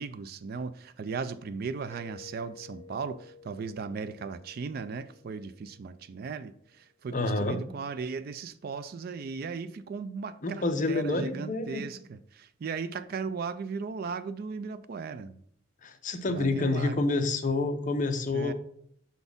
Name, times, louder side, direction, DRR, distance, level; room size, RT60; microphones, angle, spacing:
voice 1, 0.0-15.4 16.3-17.0 18.3-18.5, right 5 dB, 50° right, 0.3 m, -37 dB
Mallet percussion, 1.9-6.5, left 3 dB, 10° left, 1.1 m, -53 dB
voice 2, 7.1-7.6 10.4-11.9 15.8-18.5, left 2 dB, 40° left, 0.6 m, -28 dB
5.9 x 4.1 x 5.3 m
head